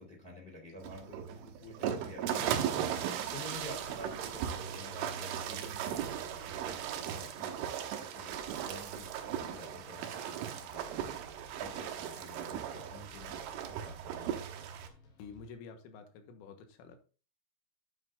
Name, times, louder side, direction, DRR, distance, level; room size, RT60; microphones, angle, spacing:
voice 1, 0.0-11.2 11.5-14.3, left 1 dB, 20° left, 0 dB, 1.3 m, -50 dB
sound 1, 0.8-14.9, right 9 dB, 80° right, 3.6 m, -37 dB
sound 2, 3.0-15.5, left 2 dB, 60° left, 4.7 m, -58 dB
voice 2, 15.2-17.0, left 5 dB, 85° left, 6 dB, 3.9 m, -49 dB
10.0 x 8.8 x 2.6 m, 0.35 s
omnidirectional pair, 5.8 m